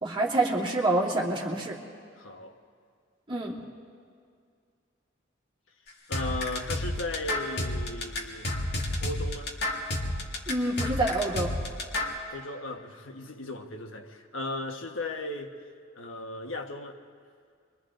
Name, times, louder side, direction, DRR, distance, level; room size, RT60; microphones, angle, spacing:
voice 1, 0.0-1.8 3.3-3.6 10.5-11.5, right 2 dB, 25° right, -4 dB, 2.7 m, -27 dB
voice 2, 2.2-2.6 6.1-8.5 9.0-9.5 12.3-15.5 15.9-17.0, left 2 dB, 85° left, 4 dB, 1.4 m, -36 dB
sound 1, 6.1-12.2, left 1 dB, 55° left, 2.2 m, -30 dB
29.0 x 23.5 x 3.9 m, 2.2 s
head